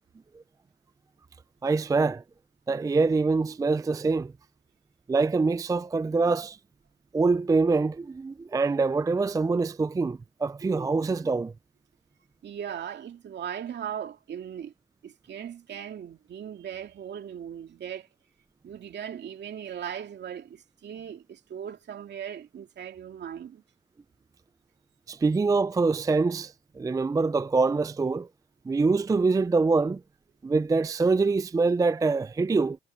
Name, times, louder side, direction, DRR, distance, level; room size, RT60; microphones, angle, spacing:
voice 1, 1.6-2.2 2.7-4.3 5.1-6.6 7.1-11.5 25.1-28.3 28.7-30.0 30.4-32.8, right 4 dB, 15° right, 0.4 m, -24 dB
voice 2, 12.4-14.7 15.0-18.1 18.6-23.6, right 9 dB, 60° right, 2.5 m, -38 dB
cardioid pair, 90°, 20 cm